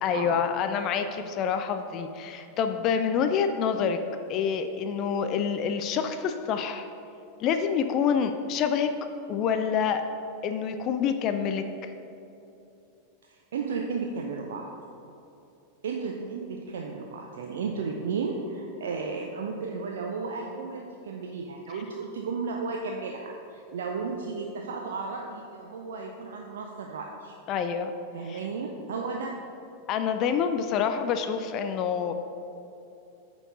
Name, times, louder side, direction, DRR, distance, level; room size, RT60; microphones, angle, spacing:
voice 1, 0.0-4.0 4.3-6.9 7.4-8.9 9.3-10.0 10.4-11.9 27.5-27.9 28.2-28.4 29.9-32.1, left 7 dB, 35° left, 8 dB, 0.4 m, -27 dB
voice 2, 13.3-14.7 15.8-27.3 28.1-29.3, right 4 dB, 60° right, 1 dB, 0.5 m, -34 dB
8.9 x 4.6 x 4.0 m, 2.8 s
figure-of-eight pair, 90°, 0 cm